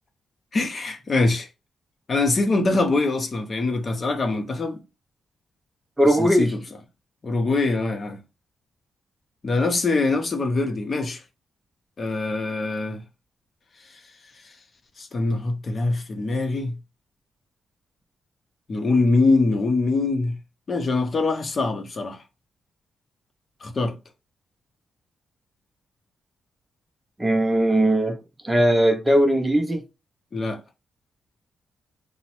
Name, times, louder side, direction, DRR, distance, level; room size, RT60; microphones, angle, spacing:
voice 1, 0.5-1.5 2.1-4.8 6.2-6.5 7.2-8.2 9.4-11.2 12.0-13.0 15.0-16.7 18.7-20.3 20.7-22.2 23.6-24.0 30.3-30.6, left 3 dB, 40° left, 0.6 m, -23 dB
voice 2, 6.0-6.5 27.2-28.2 28.4-29.8, right 1 dB, 15° right, 0.5 m, -19 dB
2.9 x 2.0 x 2.9 m
cardioid pair, 90°, 0 cm